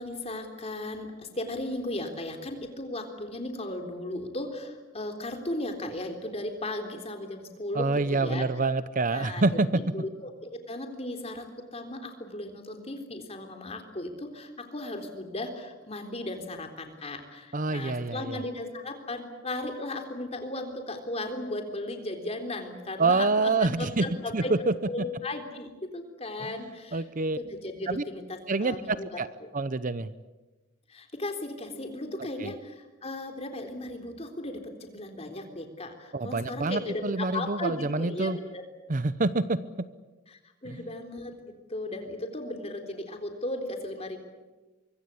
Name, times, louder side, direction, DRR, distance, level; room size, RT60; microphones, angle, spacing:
voice 1, 0.0-8.5 9.1-9.4 9.7-27.0 27.4-29.2 30.9-38.6 40.3-44.2, left 1 dB, 30° left, 5 dB, 3.7 m, -36 dB
voice 2, 7.7-9.8 17.5-18.4 23.0-24.1 24.3-24.6 26.5-26.6 26.9-27.4 27.9-28.0 28.5-29.3 29.5-30.1 32.4-32.5 36.1-38.4 38.9-39.6 40.7-40.9, right 3 dB, 40° right, 15 dB, 0.8 m, -27 dB
24.0 x 24.0 x 8.5 m, 1.2 s
head